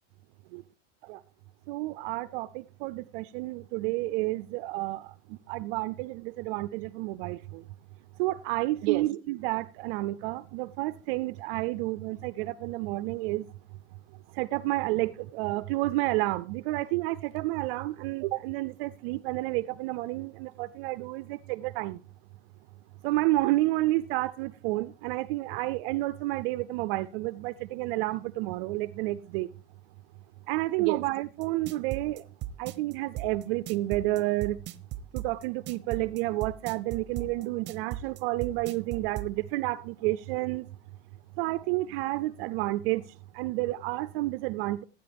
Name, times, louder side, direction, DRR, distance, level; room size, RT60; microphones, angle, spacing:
voice 1, 1.7-5.1 5.5-7.6 8.2-13.5 14.4-22.0 23.0-29.5 30.5-32.2 32.6-34.6 35.1-40.6 41.4-43.0 43.3-44.8, right 18 dB, 60° right, 0.5 m, -30 dB
sound 1, 31.4-39.3, right 11 dB, 35° right, 0.8 m, -37 dB
17.0 x 9.2 x 3.4 m
supercardioid pair, 120°, 33 cm